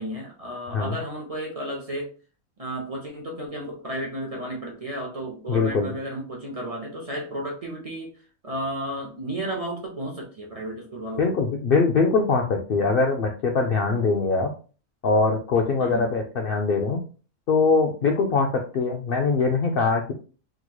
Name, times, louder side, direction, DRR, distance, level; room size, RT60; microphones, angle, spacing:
voice 1, 0.0-2.1 2.6-8.1 8.4-11.3 15.8-16.1, right 1 dB, 35° right, -1 dB, 0.6 m, -33 dB
voice 2, 5.5-5.9 11.2-14.5 15.0-17.0 17.5-20.1, left 4 dB, 70° left, 2 dB, 0.5 m, -22 dB
3.7 x 3.0 x 2.2 m, 0.37 s
omnidirectional pair, 1.5 m